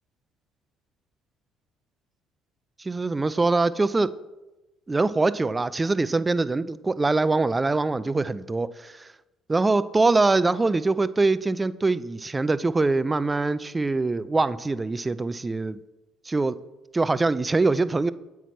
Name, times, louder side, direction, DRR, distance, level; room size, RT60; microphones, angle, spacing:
voice 1, 2.8-4.1 4.9-9.1 9.5-15.8 16.3-16.6 16.9-18.1, right 3 dB, 20° right, 16 dB, 0.3 m, -23 dB
7.9 x 5.9 x 3.1 m, 1.1 s
hypercardioid pair, 65°, 0 cm